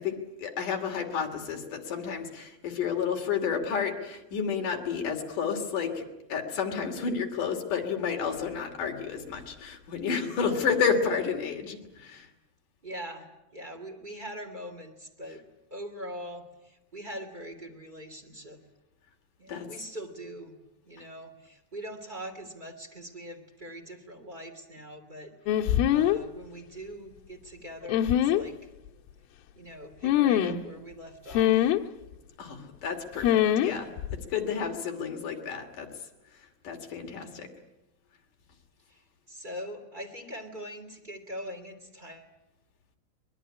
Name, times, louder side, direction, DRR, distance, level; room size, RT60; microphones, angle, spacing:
voice 1, 0.0-6.0 6.3-12.3 19.5-19.7 32.4-33.9 34.3-35.9 36.6-37.5, left 6 dB, 45° left, 3 dB, 3.6 m, -31 dB
voice 2, 12.8-15.4 15.7-18.6 19.4-20.6 20.8-28.7 29.5-31.7 37.0-37.5 38.9-42.3, equal, 15° right, 6 dB, 1.7 m, -42 dB
sound 1, 25.5-26.2 27.9-28.4 30.0-30.6 31.3-31.8 33.2-33.7 34.0-34.2, left 11 dB, 80° left, 3.6 m, -23 dB
24.5 x 21.0 x 9.9 m, 0.95 s
omnidirectional pair, 5.8 m